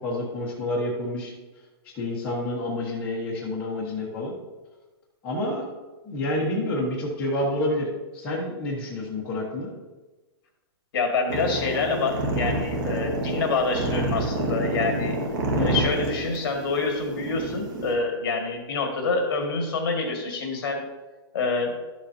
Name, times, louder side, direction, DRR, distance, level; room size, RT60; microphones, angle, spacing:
voice 1, 0.0-1.3 1.9-4.3 5.2-5.7 6.0-9.7 15.5-15.8, left 1 dB, 10° left, -7 dB, 1.2 m, -28 dB
voice 2, 10.9-15.2 15.6-20.8 21.3-21.7, left 3 dB, 55° left, 2 dB, 1.9 m, -27 dB
sound 1, 11.3-17.9, right 2 dB, 45° right, 1.6 m, -28 dB
12.0 x 7.3 x 2.8 m, 1.2 s
hypercardioid pair, 180°, 14 cm